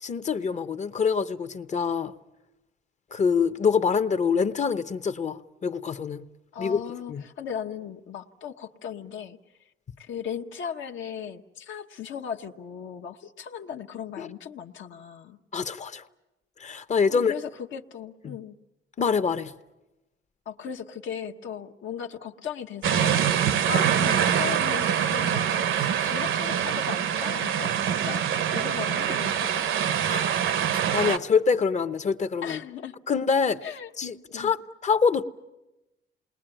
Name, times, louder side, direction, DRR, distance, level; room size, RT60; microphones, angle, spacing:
voice 1, 0.0-2.1 3.1-6.2 6.6-6.8 7.1-7.2 14.2-14.3 15.5-16.0 16.6-17.3 18.2-18.4 19.0-19.5 30.1-30.3 30.9-32.6 33.1-33.6 34.0-34.6 34.8-35.2, left 5 dB, 35° left, 11 dB, 0.8 m, -25 dB
voice 2, 6.5-9.4 10.0-15.4 17.1-18.6 20.5-29.6 32.4-32.9 33.6-33.9 34.3-34.5, left 8 dB, 65° left, 3 dB, 1.1 m, -37 dB
sound 1, 22.8-31.2, right 9 dB, 70° right, 0.9 m, -24 dB
28.0 x 21.0 x 9.0 m, 1.0 s
cardioid pair, 135°, 21 cm